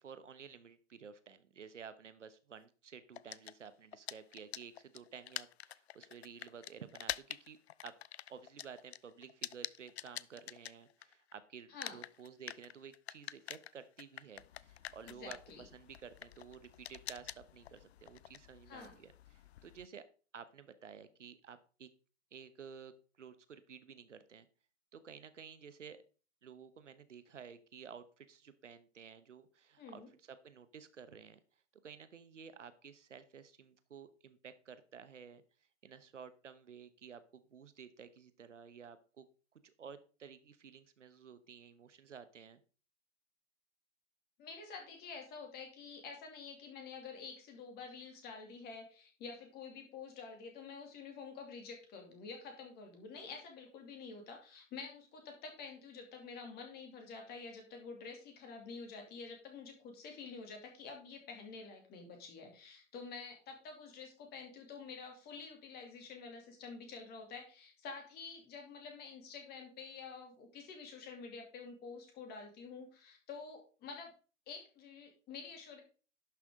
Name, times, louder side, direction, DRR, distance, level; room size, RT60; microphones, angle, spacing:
voice 1, 0.0-7.6 7.8-7.9 8.3-20.0 20.3-21.9 22.3-22.9 23.2-24.5 24.9-26.0 26.4-31.4 31.8-35.4 35.8-39.3 39.5-42.6, right 7 dB, 75° right, 13 dB, 1.1 m, -53 dB
sound 1, 3.1-11.3 11.6-19.9, left 12 dB, 60° left, 0.5 m, -47 dB
voice 2, 15.1-15.6 18.7-18.9 29.8-30.1 44.4-74.1 74.5-75.8, left 5 dB, 25° left, 3 dB, 2.6 m, -49 dB
11.5 x 6.1 x 3.7 m, 0.37 s
figure-of-eight pair, 115°, 36 cm